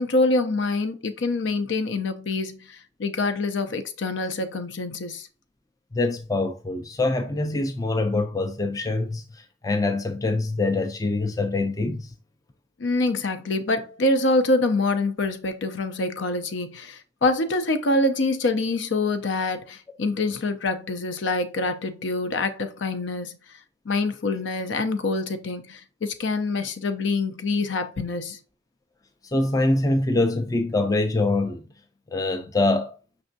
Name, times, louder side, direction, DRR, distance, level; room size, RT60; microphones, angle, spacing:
voice 1, 0.0-5.3 12.8-23.4 23.9-28.4, left 2 dB, 65° left, 0.5 m, -25 dB
voice 2, 5.9-12.1 29.2-31.6 32.1-32.9, left 2 dB, 15° left, 0.4 m, -24 dB
5.3 x 3.4 x 2.6 m
head